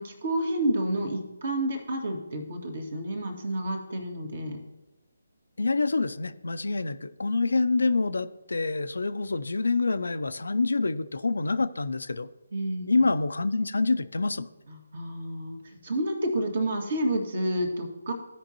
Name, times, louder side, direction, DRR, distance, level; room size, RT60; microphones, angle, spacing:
voice 1, 0.0-4.6 12.5-12.8 14.7-18.1, right 1 dB, 55° right, 3 dB, 1.9 m, -30 dB
voice 2, 5.6-12.3 12.9-14.5, left 3 dB, 70° left, 12 dB, 0.5 m, -26 dB
15.5 x 5.2 x 2.9 m, 1.0 s
figure-of-eight pair, 145°, 0 cm